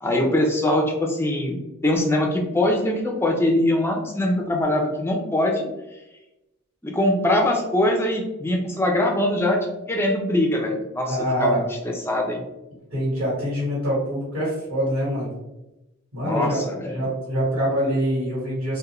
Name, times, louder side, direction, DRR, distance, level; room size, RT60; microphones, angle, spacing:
voice 1, 0.0-1.6 1.8-5.6 6.8-9.6 9.9-11.6 11.8-12.4 16.2-17.0, left 1 dB, 10° left, 1 dB, 0.3 m, -22 dB
voice 2, 11.1-11.6 12.9-15.3 16.1-16.6 16.8-18.8, equal, 80° right, -7 dB, 1.2 m, -24 dB
2.4 x 2.0 x 2.9 m, 0.96 s
head